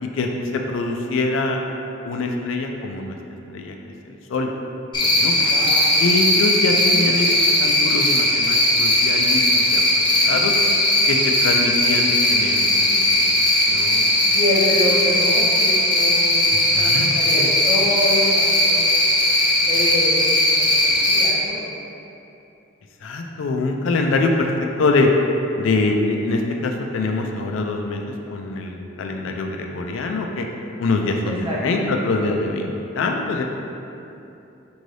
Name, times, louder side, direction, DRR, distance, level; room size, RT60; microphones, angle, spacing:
voice 1, 0.0-1.6 2.0-3.2 3.5-3.7 4.3-4.5 5.0-5.3 6.0-9.8 10.2-10.5 11.1-13.4 13.7-14.1 16.8-17.5 23.0-24.5 24.8-25.1 25.6-28.0 28.3-30.5 30.8-32.7 32.9-33.4, left 3 dB, 75° left, 2 dB, 0.4 m, -24 dB
Cricket, 4.9-21.3, left 1 dB, 25° left, 0.5 m, -18 dB
voice 2, 5.5-5.9 14.3-18.9 19.7-21.7 31.2-32.3, equal, 25° right, -7 dB, 0.7 m, -27 dB
4.5 x 2.6 x 3.2 m, 2.8 s
head